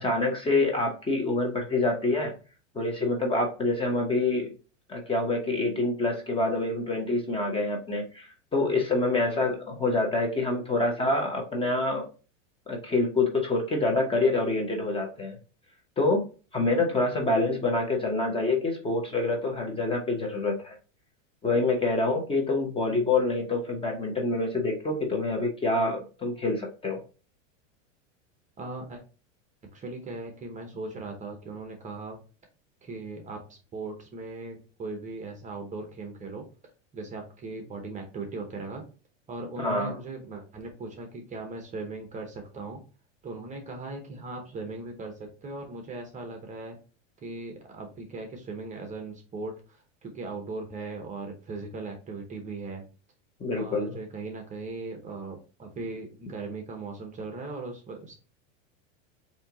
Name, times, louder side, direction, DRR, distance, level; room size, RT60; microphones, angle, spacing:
voice 1, 0.0-2.3 2.7-4.5 4.9-12.1 12.7-15.4 16.0-16.2 16.5-20.8 21.4-27.0 39.6-40.0 53.4-54.0, left 2 dB, 15° left, 1 dB, 0.9 m, -26 dB
voice 2, 28.6-29.0 29.6-32.2 32.8-36.5 36.9-38.8 39.3-42.8 43.2-46.8 47.2-52.8 53.5-58.2, right 3 dB, 20° right, 3 dB, 0.8 m, -38 dB
4.3 x 2.8 x 3.7 m, 0.34 s
supercardioid pair, 130°, 38 cm